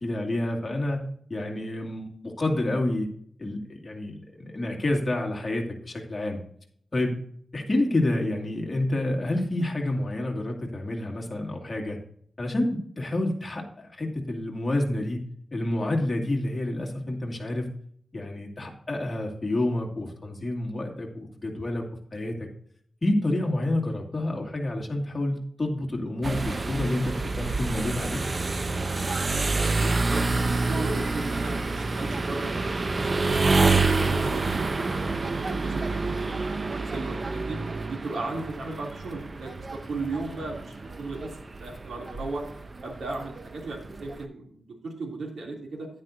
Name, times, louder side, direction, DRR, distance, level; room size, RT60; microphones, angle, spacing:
voice 1, 0.0-1.0 1.3-3.1 3.4-6.4 6.9-7.1 7.5-12.0 12.4-15.2 15.5-17.7 18.1-21.8 22.1-22.5 23.0-28.2, left 1 dB, 25° left, 0 dB, 2.2 m, -28 dB
sound 1, 26.2-44.2, right 3 dB, 35° right, 0.5 m, -28 dB
voice 2, 29.6-37.6 37.9-41.3 41.6-42.4 42.8-45.9, right 3 dB, 85° right, -1 dB, 3.0 m, -36 dB
10.5 x 9.5 x 2.7 m, 0.63 s
wide cardioid pair, 110°, 0 cm